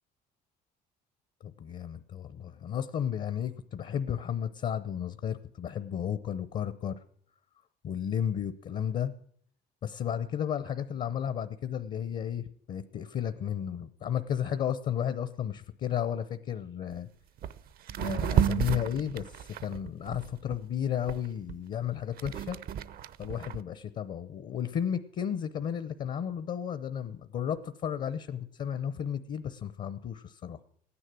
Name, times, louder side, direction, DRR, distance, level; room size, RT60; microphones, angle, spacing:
voice 1, 1.4-7.0 7.8-9.1 9.8-17.1 18.0-22.6 23.2-30.6, left 9 dB, 50° left, 12 dB, 0.8 m, -33 dB
sound 1, 16.9-17.0 17.4-17.6 17.9-20.6 21.1-23.6, right 9 dB, 60° right, 0.7 m, -31 dB
15.5 x 9.9 x 7.6 m, 0.62 s
cardioid pair, 110°, 17 cm